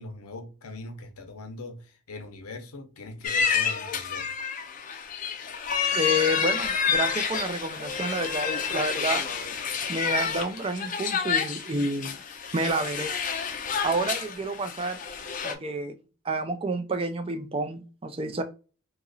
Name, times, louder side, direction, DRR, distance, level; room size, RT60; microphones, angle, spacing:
voice 1, 0.0-4.3, left 3 dB, 90° left, 0.7 m, -41 dB
sound 1, 3.2-15.5, left 6 dB, 35° left, 0.4 m, -29 dB
voice 2, 5.9-9.2 9.9-12.2 12.5-13.1 13.8-15.0 15.4-15.9 16.2-18.4, right 1 dB, 25° right, 0.4 m, -29 dB
2.8 x 2.5 x 3.9 m
head